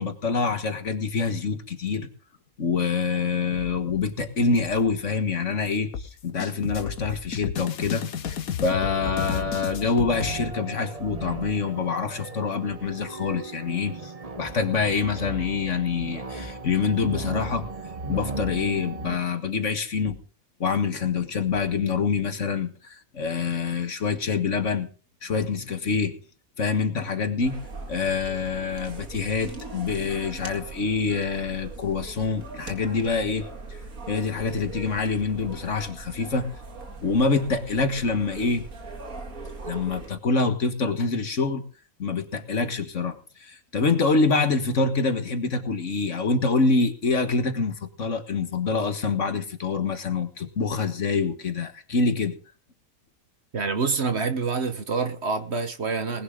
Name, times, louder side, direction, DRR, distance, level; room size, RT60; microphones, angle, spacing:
voice 1, 0.0-2.1 2.6-8.4 8.6-14.1 14.4-17.7 18.1-20.2 20.6-24.9 25.2-26.1 26.6-27.6 27.9-33.4 34.1-36.5 37.0-38.6 39.6-41.6 42.0-43.2 43.4-52.4, left 4 dB, 55° left, 1.8 m, -26 dB
sound 1, 5.9-10.3, left 8 dB, 75° left, 1.5 m, -32 dB
sound 2, 8.8-19.2, right 3 dB, 25° right, 1.2 m, -37 dB
sound 3, 27.4-40.1, right 3 dB, 70° right, 2.5 m, -40 dB
voice 2, 53.5-56.2, right 4 dB, 50° right, 1.3 m, -27 dB
20.0 x 11.0 x 3.8 m
omnidirectional pair, 1.5 m